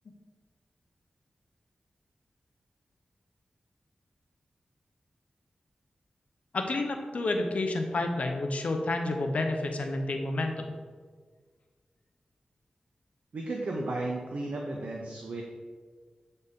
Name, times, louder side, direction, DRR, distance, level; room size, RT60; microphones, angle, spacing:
voice 1, 6.5-10.7, left 2 dB, 70° left, 4 dB, 0.8 m, -30 dB
voice 2, 13.3-15.4, right 2 dB, 70° right, -1 dB, 0.7 m, -34 dB
8.0 x 4.1 x 3.6 m, 1.5 s
cardioid pair, 65°, 2 cm